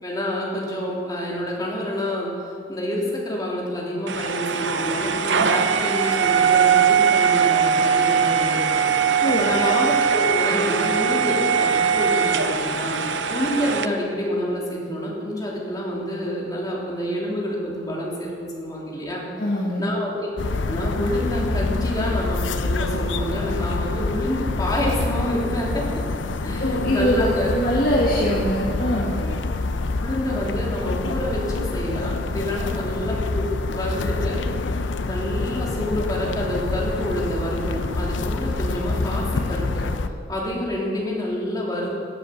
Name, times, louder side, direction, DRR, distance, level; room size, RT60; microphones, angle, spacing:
voice 1, 0.0-2.3 2.7-8.7 9.3-13.0 13.3-19.2 19.8-20.3 20.7-26.0 26.4-27.7 28.3-28.4 30.0-34.4 35.1-39.8 40.3-41.9, left 1 dB, 20° left, -4 dB, 2.8 m, -27 dB
sound 1, 4.1-13.9, right 7 dB, 75° right, 0.6 m, -20 dB
voice 2, 19.4-19.9 26.6-29.2, equal, 50° left, -3 dB, 1.6 m, -23 dB
sound 2, 20.4-40.1, left 3 dB, 85° left, 0.6 m, -26 dB
16.5 x 8.0 x 6.4 m, 2.4 s
head